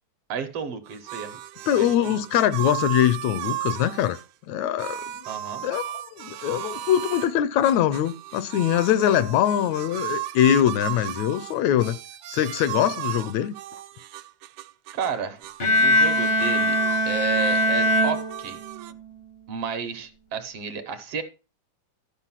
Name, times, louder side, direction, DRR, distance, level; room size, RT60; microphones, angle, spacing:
voice 1, 0.3-1.4 1.7-2.2 5.3-5.6 14.9-15.4 15.8-16.8 17.1-18.6 19.5-21.2, right 6 dB, 65° right, 1.8 m, -32 dB
sound 1, 0.8-4.3 4.8-7.3 7.6-15.1 15.4-17.0 17.3-18.9, right 13 dB, 90° right, 2.1 m, -35 dB
voice 2, 1.7-4.2 4.5-5.0 5.6-12.0 12.3-13.5, left 11 dB, 80° left, 1.8 m, -22 dB
Bowed string instrument, 15.6-18.9, left 1 dB, 55° left, 0.6 m, -22 dB
12.5 x 5.2 x 5.6 m
omnidirectional pair, 3.3 m